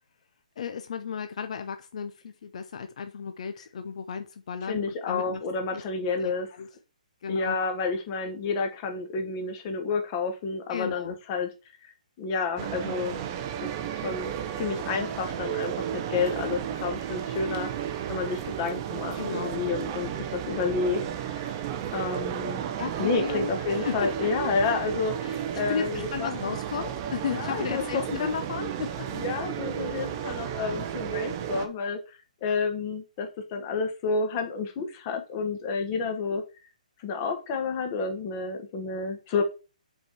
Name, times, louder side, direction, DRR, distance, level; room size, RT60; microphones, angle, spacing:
voice 1, 0.6-5.4 5.7-5.8 6.2-6.3 6.6-6.7 7.2-7.6 10.7-11.1 19.2-19.5 22.8-24.3 25.2-25.4 25.7-29.2, left 6 dB, 55° left, 8 dB, 0.7 m, -34 dB
voice 2, 4.7-6.5 7.3-11.5 11.8-11.9 12.2-13.2 13.6-13.7 14.0-17.7 18.1-21.0 21.9-22.6 23.0-26.3 27.4-28.3 29.1-36.4 37.0-39.4, left 4 dB, 25° left, 5 dB, 1.3 m, -30 dB
sound 1, 12.6-31.7, right 9 dB, 25° right, 0.6 m, -33 dB
5.3 x 4.8 x 4.5 m, 0.31 s
hypercardioid pair, 165°, 4 cm